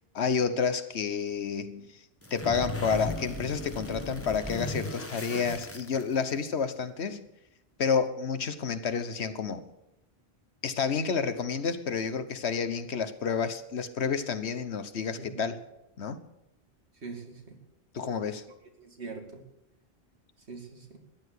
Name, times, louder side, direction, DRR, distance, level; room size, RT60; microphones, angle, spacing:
voice 1, 0.1-2.0 2.3-7.3 7.8-9.7 10.6-15.6 16.0-16.2 17.9-18.4, left 6 dB, 85° left, 11 dB, 1.4 m, -30 dB
sound 1, 2.2-6.4, left 1 dB, 15° left, 1.2 m, -36 dB
voice 2, 15.2-15.5 17.0-17.6 18.8-19.4 20.5-21.0, right 4 dB, 85° right, 3 dB, 2.9 m, -43 dB
14.0 x 10.5 x 8.3 m, 0.88 s
omnidirectional pair, 1.1 m